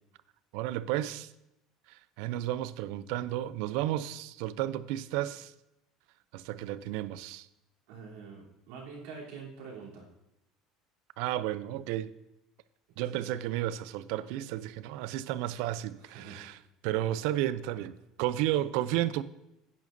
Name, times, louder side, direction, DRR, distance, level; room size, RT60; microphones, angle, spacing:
voice 1, 0.5-1.3 1.9-5.5 6.3-7.5 11.2-12.1 13.0-16.6 16.8-17.9 18.2-19.2, right 13 dB, 65° right, 0.4 m, -32 dB
voice 2, 7.9-10.1 13.1-13.2 16.0-16.4 17.7-17.8, right 5 dB, 85° right, 3.2 m, -46 dB
10.0 x 9.4 x 2.6 m
cardioid pair, 180°, 0 cm